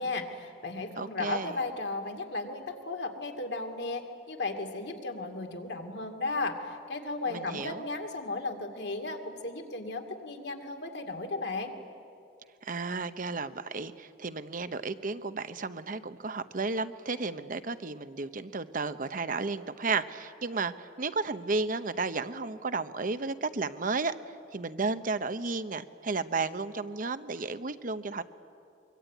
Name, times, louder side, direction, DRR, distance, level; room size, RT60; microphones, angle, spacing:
voice 1, 0.0-11.7, left 3 dB, 70° left, 5 dB, 2.5 m, -35 dB
voice 2, 1.0-1.6 7.3-7.8 12.6-24.1 24.5-28.2, right 3 dB, 50° right, 11 dB, 0.9 m, -33 dB
24.0 x 24.0 x 9.3 m, 2.5 s
head